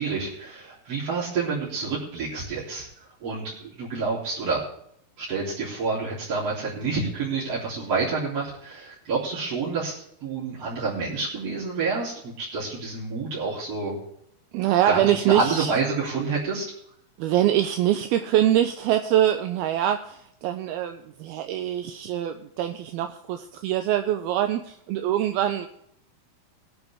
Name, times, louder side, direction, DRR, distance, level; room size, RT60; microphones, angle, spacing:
voice 1, 0.0-2.9 3.2-4.6 5.2-13.9 14.9-16.7, right 4 dB, 40° right, -8 dB, 4.2 m, -28 dB
voice 2, 14.5-15.7 17.2-25.7, right 12 dB, 80° right, 7 dB, 2.4 m, -24 dB
21.5 x 8.1 x 3.5 m, 0.72 s
omnidirectional pair, 4.8 m